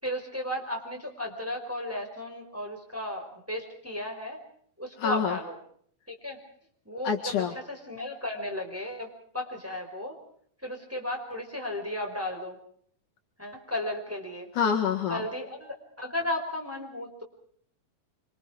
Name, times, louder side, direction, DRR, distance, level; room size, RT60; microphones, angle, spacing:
voice 1, 0.0-4.4 4.8-5.6 6.1-6.4 6.8-9.1 9.3-10.2 10.6-12.6 13.4-14.5 15.1-17.2, left 1 dB, 5° right, 1 dB, 5.0 m, -34 dB
voice 2, 5.0-5.4 7.0-7.5 14.6-15.2, left 7 dB, 65° left, 3 dB, 3.2 m, -26 dB
26.5 x 26.5 x 4.8 m, 0.62 s
omnidirectional pair, 4.1 m